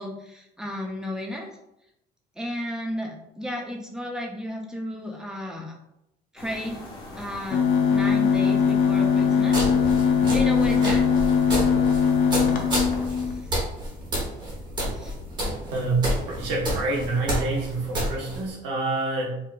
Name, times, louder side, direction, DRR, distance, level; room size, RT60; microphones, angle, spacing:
voice 1, 0.0-1.5 2.4-5.8 6.3-6.8 7.1-9.6 10.0-11.0 13.2-13.5 14.9-15.1, equal, 5° right, 1 dB, 0.4 m, -33 dB
sound 1, 6.4-13.1, left 1 dB, 20° left, 1.0 m, -40 dB
sound 2, 7.5-13.4, left 6 dB, 45° left, 0.5 m, -21 dB
sound 3, 9.5-18.5, equal, 25° right, 1.0 m, -30 dB
voice 2, 15.7-19.4, right 3 dB, 70° right, -2 dB, 1.1 m, -27 dB
4.6 x 2.5 x 2.3 m, 0.83 s
cardioid pair, 175°, 18 cm